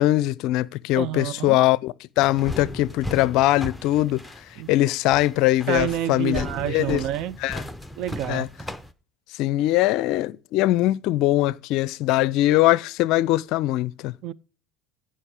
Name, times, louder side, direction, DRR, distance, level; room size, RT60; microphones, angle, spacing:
voice 1, 0.0-4.2 4.7-7.0 7.4-7.6 8.3-8.5 9.4-14.1, left 16 dB, 55° left, 0.5 m, -21 dB
voice 2, 1.0-1.6 4.6-4.7 5.7-7.4 8.0-8.5 14.2-14.3, right 12 dB, 50° right, 0.5 m, -28 dB
sound 1, 2.2-8.9, equal, ahead, 0.9 m, -36 dB
15.0 x 5.6 x 4.8 m
figure-of-eight pair, 70°, 0 cm